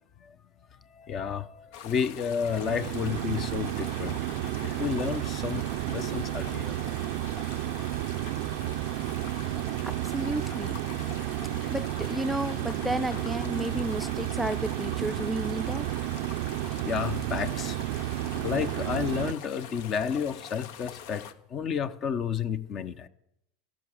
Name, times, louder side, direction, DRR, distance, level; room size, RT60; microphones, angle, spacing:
voice 1, 0.9-4.2 4.6-6.8 16.8-17.8 18.4-21.2 21.5-23.1, left 7 dB, 40° left, 0.9 m, -31 dB
sound 1, 1.7-21.3, left 8 dB, 65° left, 1.0 m, -44 dB
sound 2, 2.3-19.3, right 16 dB, 65° right, 0.4 m, -32 dB
voice 2, 9.8-10.8 11.7-16.2, right 1 dB, 5° right, 0.5 m, -32 dB
14.0 x 6.3 x 10.0 m
hypercardioid pair, 95°, 0 cm